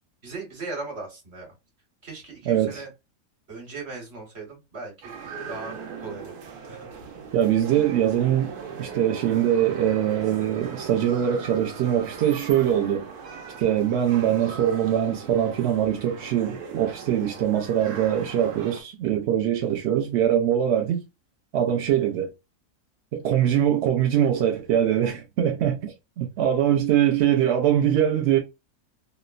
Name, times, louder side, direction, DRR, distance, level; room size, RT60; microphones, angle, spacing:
voice 1, 0.2-1.5 2.0-2.9 3.5-5.2 5.5-6.4 6.7-6.9, right 3 dB, 45° right, 1.3 m, -38 dB
voice 2, 2.5-2.8 7.3-8.5 8.8-13.1 13.6-21.0 21.5-22.3 23.1-28.4, right 10 dB, 70° right, 0.6 m, -22 dB
sound 1, 5.0-18.8, right 5 dB, 85° right, 1.2 m, -39 dB
3.0 x 2.1 x 2.3 m
omnidirectional pair, 1.6 m